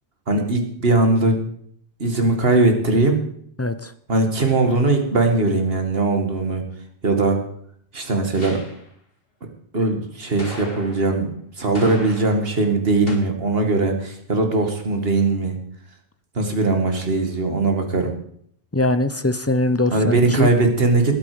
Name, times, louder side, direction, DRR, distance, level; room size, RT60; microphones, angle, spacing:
voice 1, 0.3-1.4 2.0-3.2 4.1-6.7 7.0-7.4 7.9-8.6 9.7-11.3 11.6-15.6 16.4-18.1 19.9-21.1, right 2 dB, 65° right, 4 dB, 2.3 m, -20 dB
voice 2, 3.6-3.9 18.7-20.5, left 2 dB, 15° left, 12 dB, 0.7 m, -21 dB
sound 1, 4.6-5.1 8.3-8.9 10.4-11.2 11.7-12.6 13.1-13.2, left 2 dB, 60° left, 2.6 m, -37 dB
19.5 x 9.2 x 5.1 m, 0.65 s
omnidirectional pair, 1.1 m